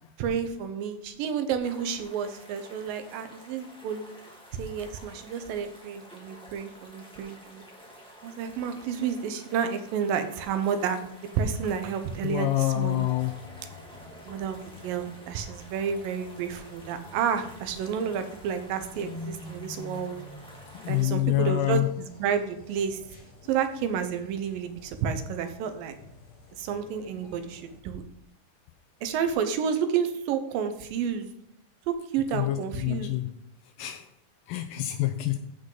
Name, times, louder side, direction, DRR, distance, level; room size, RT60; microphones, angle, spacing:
voice 1, 0.2-4.2 4.5-7.6 8.2-11.0 11.4-13.1 14.2-20.2 20.9-23.0 23.5-26.0 26.6-28.0 29.0-31.3 31.9-33.1, right 7 dB, 75° right, 9 dB, 2.4 m, -30 dB
sound 1, 1.6-21.0, equal, 10° left, 0.3 m, -51 dB
voice 2, 12.2-13.3 20.7-21.9 32.3-33.2 33.8-34.1 34.5-35.4, left 15 dB, 80° left, 8 dB, 2.2 m, -26 dB
sound 2, 12.9-27.8, left 2 dB, 50° left, 4.3 m, -48 dB
14.5 x 5.2 x 3.9 m, 0.74 s
omnidirectional pair, 4.3 m